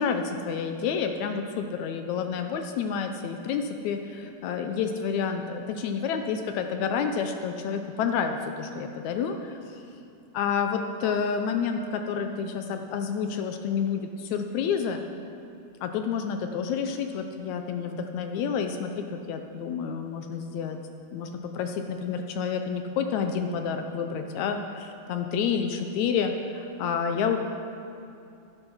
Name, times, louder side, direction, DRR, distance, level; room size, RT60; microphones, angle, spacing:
voice 1, 0.0-9.6 10.3-15.0 15.8-20.8 21.1-27.4, left 6 dB, 75° left, 6 dB, 1.9 m, -29 dB
12.0 x 11.5 x 5.6 m, 2.7 s
omnidirectional pair, 3.6 m